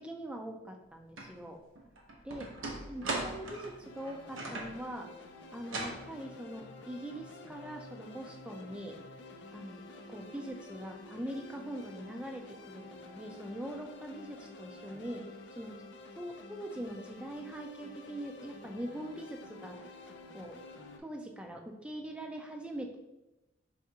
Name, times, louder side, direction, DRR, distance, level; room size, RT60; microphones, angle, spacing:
voice 1, 0.0-1.6 2.2-2.5 2.9-5.1 5.5-9.0 9.5-9.8 10.1-15.2 15.6-15.7 16.1-19.7 20.3-20.6 21.0-23.0, right 1 dB, 5° right, 2 dB, 0.4 m, -42 dB
sound 1, 1.2-1.3 1.8-4.8 5.6-6.0, right 2 dB, 80° right, 0.8 m, -39 dB
sound 2, 3.8-21.0, left 2 dB, 60° left, 0.4 m, -50 dB
4.7 x 3.4 x 2.8 m, 0.98 s
head